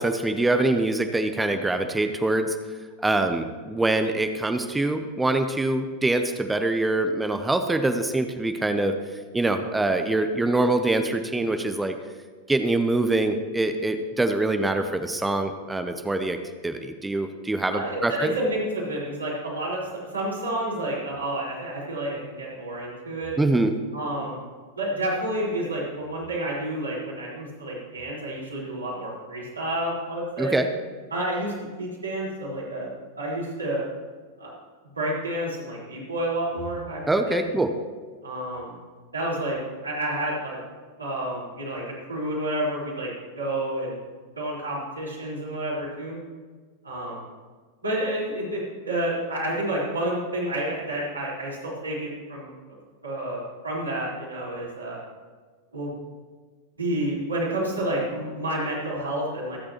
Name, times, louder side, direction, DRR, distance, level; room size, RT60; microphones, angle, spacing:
voice 1, 0.0-2.6 3.0-8.9 9.3-12.0 12.5-16.4 16.6-18.3 23.4-23.7 30.4-30.7 37.1-37.7, right 2 dB, 10° right, 7 dB, 0.8 m, -24 dB
voice 2, 17.7-23.3 23.9-24.4 24.8-30.6 31.1-32.9 33.2-33.8 34.4-34.5 34.9-37.5 38.2-38.7 39.1-40.6 41.0-41.8 42.1-44.0 44.3-46.2 46.8-47.2 47.8-52.5 53.0-55.0 55.7-55.9 56.8-59.6, right 1 dB, 80° right, -7 dB, 4.7 m, -29 dB
25.0 x 8.5 x 3.1 m, 1.5 s
figure-of-eight pair, 90°, 0 cm